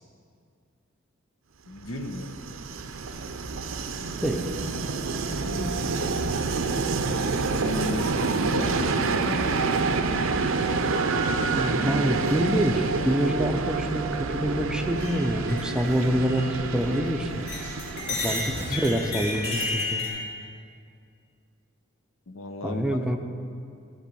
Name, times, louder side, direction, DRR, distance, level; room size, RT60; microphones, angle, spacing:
voice 1, 1.7-2.4 5.4-6.0 7.6-9.8 18.1-18.2 22.3-22.8 23.1-23.2, left 2 dB, 75° left, 6 dB, 0.9 m, -35 dB
Train, 1.9-19.6, right 4 dB, 80° right, 0.6 m, -28 dB
voice 2, 11.0-17.4 18.2-18.4 18.7-20.0 22.6-23.2, equal, 5° right, 5 dB, 0.6 m, -26 dB
sound 1, 14.9-17.1 17.4-20.1, left 2 dB, 60° left, 2.4 m, -33 dB
13.0 x 5.4 x 6.8 m, 2.3 s
head